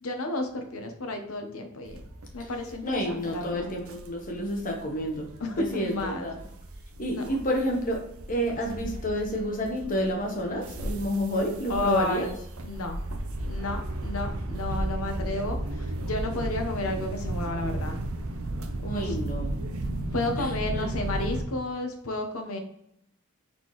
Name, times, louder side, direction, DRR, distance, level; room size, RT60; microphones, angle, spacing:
voice 1, 0.0-2.0 2.3-3.7 5.4-6.3 7.1-7.2 11.7-12.4 12.6-13.0 13.5-18.0 18.8-19.1 20.1-22.6, left 2 dB, 70° left, 5 dB, 0.8 m, -32 dB
sound 1, 1.9-21.4, right 1 dB, 65° right, 0.5 m, -35 dB
voice 2, 2.8-5.3 5.6-6.4 7.0-8.0 8.3-12.3 18.8-19.6 20.4-20.9, equal, 40° left, 1 dB, 1.0 m, -29 dB
4.3 x 3.7 x 3.0 m, 0.76 s
head